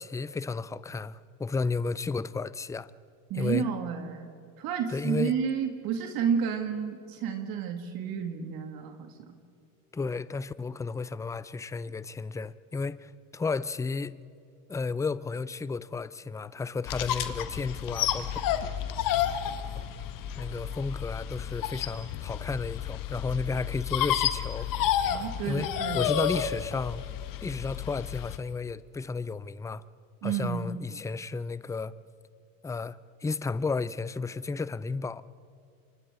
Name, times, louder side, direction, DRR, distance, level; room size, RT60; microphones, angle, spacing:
voice 1, 0.0-2.9 3.3-3.7 4.9-5.3 9.9-14.2 14.7-18.4 19.7-19.8 20.4-24.7 25.5-25.7 25.9-27.0 27.4-29.8 30.2-31.9 32.6-35.2, left 4 dB, 10° left, 0.4 m, -33 dB
voice 2, 3.3-4.3 4.6-9.3 25.1-26.1 30.2-30.6 30.9-31.0, right 7 dB, 60° right, 2.3 m, -31 dB
sound 1, 16.9-28.4, left 10 dB, 50° left, 1.5 m, -31 dB
28.5 x 25.0 x 3.8 m
supercardioid pair, 90°, 41 cm